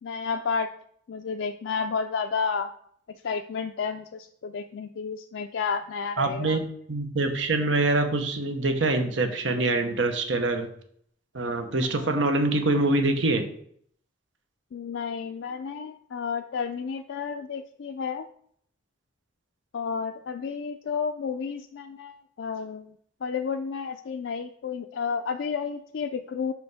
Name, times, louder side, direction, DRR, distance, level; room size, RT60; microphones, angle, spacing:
voice 1, 0.0-0.7 1.1-2.7 3.2-6.6 11.9-12.2 14.7-18.3 19.7-22.9 23.2-26.5, left 5 dB, 75° left, 5 dB, 0.4 m, -31 dB
voice 2, 6.2-10.7 11.3-13.5, right 2 dB, 80° right, 6 dB, 1.0 m, -25 dB
5.7 x 5.1 x 4.8 m, 0.64 s
head